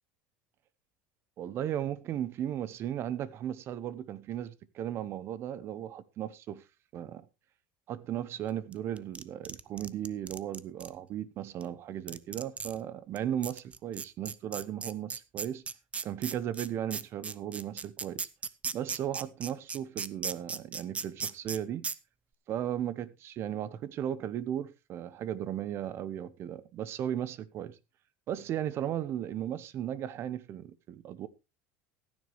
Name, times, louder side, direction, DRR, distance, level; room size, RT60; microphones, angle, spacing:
voice 1, 1.4-6.6 6.9-7.3 7.9-15.6 16.0-18.3 18.7-21.9 22.5-27.8 28.3-31.3, right 10 dB, 45° right, 1.0 m, -36 dB
sound 1, 8.7-10.9 11.6-11.7 12.1-12.8 13.2-13.3 13.4-21.6 21.8-21.9, right 5 dB, 20° right, 0.7 m, -36 dB
15.0 x 9.8 x 3.2 m
supercardioid pair, 125°, 6 cm